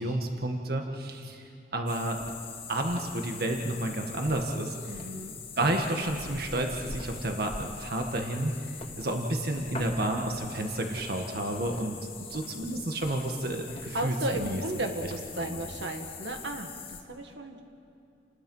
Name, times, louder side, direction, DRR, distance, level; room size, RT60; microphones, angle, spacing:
voice 1, 0.0-1.4 1.7-2.2 2.7-4.8 5.6-12.0 12.3-14.7 15.0-15.1 15.4-15.6, right 1 dB, 55° right, 3 dB, 1.7 m, -31 dB
sound 1, 1.9-17.0, left 4 dB, 30° left, 2.0 m, -42 dB
voice 2, 4.9-5.3 13.9-17.6, right 1 dB, 75° right, 4 dB, 1.8 m, -34 dB
29.5 x 20.0 x 5.6 m, 2.7 s
head